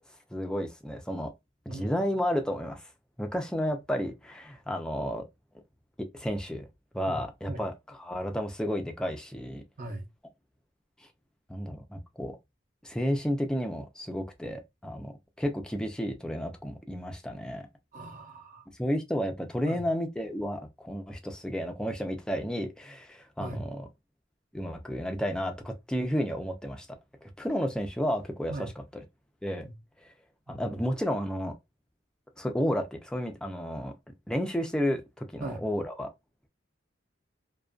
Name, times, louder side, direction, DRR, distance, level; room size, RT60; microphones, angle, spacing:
voice 1, 0.3-1.3 1.7-2.9 3.2-5.2 6.1-6.6 6.9-9.6 11.0-11.1 11.5-12.4 12.8-15.1 15.4-17.7 18.8-23.9 24.5-28.7 29.4-29.7 30.5-31.6 32.4-33.9 34.3-36.1, equal, 5° left, 0.4 m, -32 dB
voice 2, 1.7-2.0 7.1-7.2 7.5-7.6 9.8-10.1 17.9-18.7 19.6-19.8 23.4-23.6 28.5-28.7 29.6-29.8 30.5-30.7 35.4-35.6, right 2 dB, 45° right, 0.8 m, -39 dB
2.4 x 2.2 x 2.3 m
head